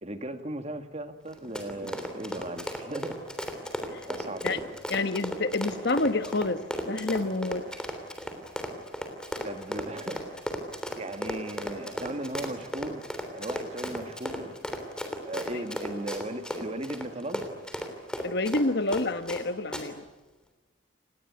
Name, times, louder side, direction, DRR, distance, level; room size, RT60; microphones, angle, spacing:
voice 1, 0.0-3.2 4.1-4.6 9.4-10.3 11.0-13.0 13.3-14.6 15.2-17.5, right 1 dB, 30° right, 8 dB, 1.9 m, -37 dB
Run, 1.3-19.4 19.7-19.8, equal, 5° left, 3.3 m, -35 dB
voice 2, 4.9-6.6 6.9-7.6 18.2-20.1, left 2 dB, 55° left, 11 dB, 1.2 m, -28 dB
28.5 x 19.5 x 9.5 m, 1.2 s
head